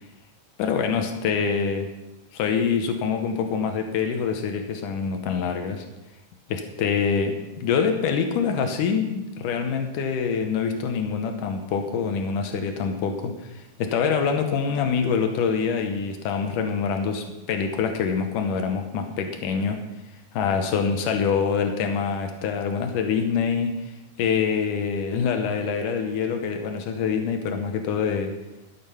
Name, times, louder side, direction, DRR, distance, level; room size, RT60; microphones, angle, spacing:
voice 1, 0.6-1.9 2.3-5.8 6.5-19.8 20.3-23.7 24.2-28.3, left 6 dB, 85° left, 5 dB, 2.5 m, -25 dB
12.5 x 8.8 x 5.7 m, 1.0 s
omnidirectional pair, 3.6 m